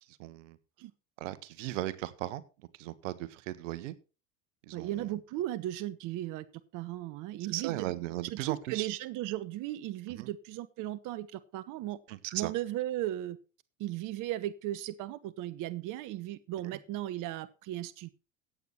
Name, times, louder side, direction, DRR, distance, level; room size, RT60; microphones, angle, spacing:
voice 1, 0.2-0.6 1.2-2.4 2.8-4.0 4.7-5.0 7.5-8.9 10.1-10.3 12.1-12.5, right 15 dB, 80° right, 17 dB, 1.3 m, -37 dB
voice 2, 4.7-6.4 6.7-7.9 8.3-12.0 12.3-13.4 13.8-18.1, right 14 dB, 55° right, 16 dB, 1.0 m, -36 dB
15.5 x 8.8 x 4.2 m, 0.33 s
hypercardioid pair, 85°, 37 cm